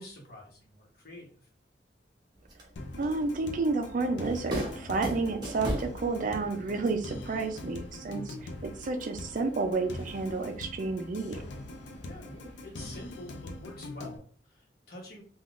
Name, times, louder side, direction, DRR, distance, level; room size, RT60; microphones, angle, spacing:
voice 1, 0.0-1.5 12.0-15.2, left 1 dB, 55° left, -1 dB, 1.0 m, -47 dB
sound 1, 2.3-12.9, equal, 25° right, 0.8 m, -42 dB
sound 2, 2.8-14.2, left 1 dB, 85° left, 0.5 m, -43 dB
voice 2, 3.0-11.4, right 3 dB, 45° right, 6 dB, 0.4 m, -31 dB
3.5 x 2.3 x 2.4 m, 0.44 s
head